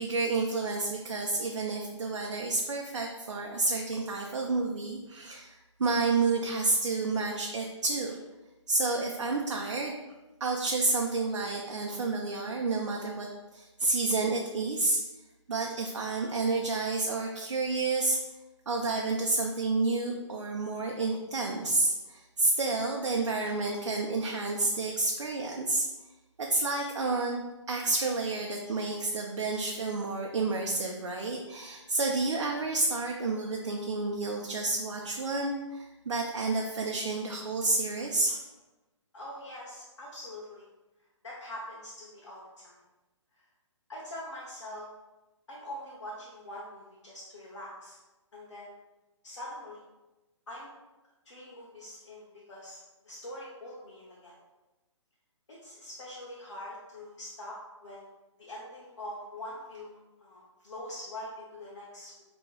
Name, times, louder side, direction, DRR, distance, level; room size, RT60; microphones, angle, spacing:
voice 1, 0.0-8.2 8.7-9.9 10.4-15.0 15.5-18.2 18.7-25.9 26.4-27.4 27.7-38.4, right 3 dB, 70° right, 0 dB, 0.6 m, -30 dB
voice 2, 39.1-40.7 41.0-42.8 43.3-43.4 43.9-44.9 45.5-48.0 48.3-48.7 49.2-49.8 50.5-50.7 51.2-54.3 55.5-58.1 58.4-62.1, left 1 dB, 70° left, -5 dB, 1.0 m, -44 dB
6.4 x 3.0 x 2.3 m, 1.1 s
figure-of-eight pair, 135°, 16 cm